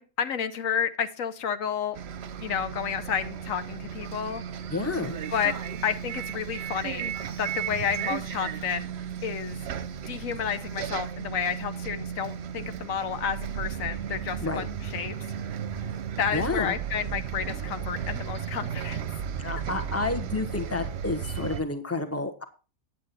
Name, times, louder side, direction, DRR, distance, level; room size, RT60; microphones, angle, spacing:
voice 1, 0.0-2.0 2.4-4.4 5.3-5.5 5.8-7.1 7.4-8.9 9.2-9.6 10.1-15.1 16.2-19.0, left 8 dB, 80° left, 10 dB, 1.2 m, -31 dB
Bus, 1.9-21.6, right 8 dB, 60° right, 0.9 m, -34 dB
voice 2, 4.7-5.2 14.4-14.7 16.3-16.7 19.4-22.4, left 3 dB, 10° left, 7 dB, 1.0 m, -30 dB
9.2 x 8.6 x 4.1 m, 0.34 s
omnidirectional pair, 1.4 m